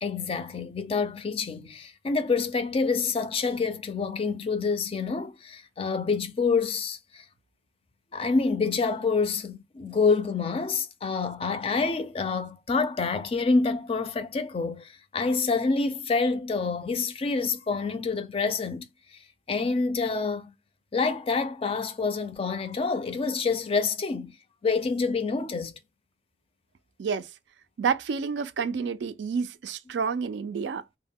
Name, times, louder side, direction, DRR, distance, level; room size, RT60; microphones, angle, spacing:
voice 1, 0.0-7.2 8.1-18.9 19.5-20.5 20.9-24.3 24.6-25.8, left 4 dB, 35° left, 0.4 m, -27 dB
voice 2, 27.0-27.3 27.8-30.8, right 6 dB, 85° right, 0.4 m, -29 dB
2.2 x 2.1 x 3.5 m
head